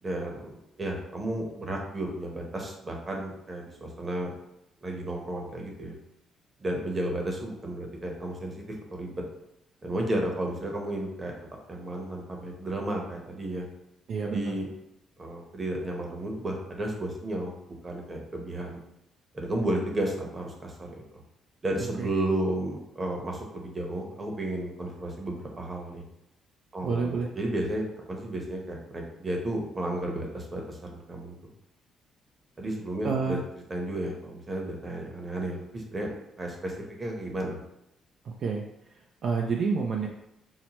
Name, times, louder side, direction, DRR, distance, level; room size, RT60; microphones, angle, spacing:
voice 1, 0.0-4.3 4.8-5.9 6.6-8.6 8.9-9.2 9.8-11.4 11.7-13.6 14.3-14.7 15.2-17.5 17.8-18.8 19.3-20.9 21.6-26.0 26.7-31.4 32.6-33.4 33.7-37.6, right 1 dB, 30° right, 0 dB, 0.9 m, -33 dB
voice 2, 14.1-14.5 22.0-22.1 26.8-27.3 33.0-33.4 38.2-38.6 39.2-40.1, right 5 dB, 65° right, 0 dB, 0.4 m, -28 dB
5.6 x 2.1 x 3.0 m, 0.85 s
cardioid pair, 90°, 0 cm